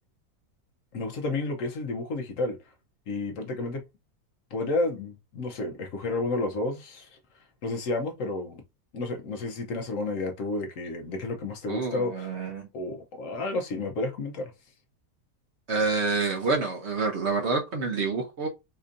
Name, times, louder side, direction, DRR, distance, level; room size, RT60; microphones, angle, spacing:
voice 1, 0.9-2.6 3.1-3.8 4.5-7.2 7.6-8.6 8.9-12.3 12.7-14.5, left 2 dB, 60° left, 1.0 m, -31 dB
voice 2, 11.7-12.7 15.7-18.5, right 4 dB, 50° right, 1.0 m, -27 dB
4.3 x 2.6 x 2.5 m
omnidirectional pair, 1.7 m